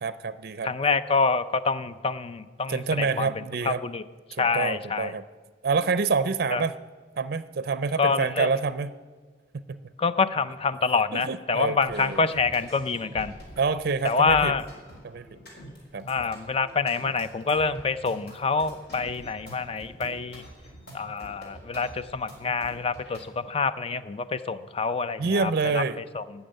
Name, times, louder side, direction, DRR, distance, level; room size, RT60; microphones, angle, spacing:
voice 1, 0.0-0.7 2.7-3.8 4.3-5.2 5.6-6.7 7.2-9.0 9.7-9.8 11.1-12.3 13.6-14.5 15.0-15.3 15.9-16.0 25.2-26.0, right 4 dB, 55° right, 14 dB, 0.5 m, -27 dB
voice 2, 0.6-3.3 3.7-4.0 4.4-5.1 6.5-6.6 8.0-8.5 10.0-13.3 14.0-14.6 16.1-20.4 20.9-25.8 26.1-26.2, left 4 dB, 30° left, 13 dB, 0.5 m, -26 dB
sound 1, 11.9-23.2, right 1 dB, 60° left, 4.1 m, -45 dB
12.0 x 7.1 x 8.8 m, 1.5 s
head